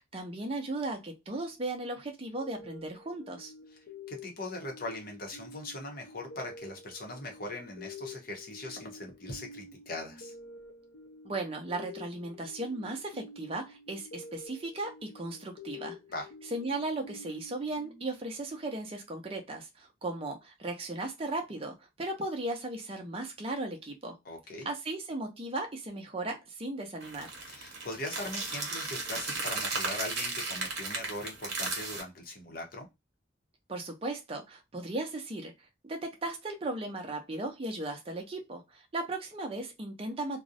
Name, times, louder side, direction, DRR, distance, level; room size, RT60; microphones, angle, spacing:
voice 1, 0.0-3.5 11.2-16.0 16.5-24.2 24.6-27.3 33.7-35.5 35.8-40.4, right 2 dB, 30° right, 0.5 m, -36 dB
sound 1, 2.4-18.7, left 3 dB, 85° left, 0.6 m, -49 dB
voice 2, 4.1-10.3 16.1-16.3 24.2-24.7 27.5-32.9, left 2 dB, 45° left, 0.7 m, -40 dB
sound 2, 27.0-32.0, right 3 dB, 60° right, 1.0 m, -35 dB
2.4 x 2.0 x 2.6 m
head